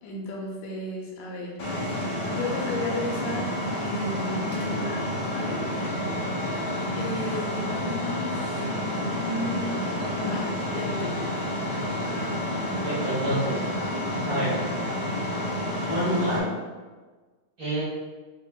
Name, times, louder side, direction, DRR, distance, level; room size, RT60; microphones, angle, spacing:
voice 1, 0.0-1.6 2.3-5.6 6.9-9.8 10.2-11.3, left 2 dB, 75° left, -2 dB, 1.9 m, -34 dB
sound 1, 1.6-16.4, left 1 dB, 60° left, 1.3 m, -29 dB
voice 2, 12.8-13.6 14.2-14.5 15.9-16.5 17.6-17.8, right 1 dB, 45° right, -10 dB, 1.6 m, -27 dB
5.3 x 2.5 x 3.6 m, 1.3 s
omnidirectional pair, 4.0 m